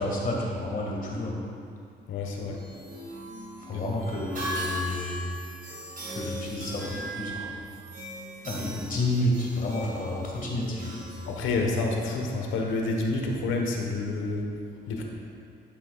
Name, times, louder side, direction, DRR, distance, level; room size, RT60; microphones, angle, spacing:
voice 1, 0.0-1.4 3.6-5.2 6.1-7.6 8.4-11.1, left 1 dB, 45° left, -2 dB, 1.7 m, -30 dB
voice 2, 2.1-2.6 3.7-3.8 11.3-14.5 14.9-15.0, left 3 dB, 85° left, 1 dB, 1.1 m, -28 dB
sound 1, 2.4-12.0, right 1 dB, 45° right, 1.6 m, -39 dB
11.5 x 6.0 x 2.3 m, 2.3 s
cardioid pair, 90°, 20 cm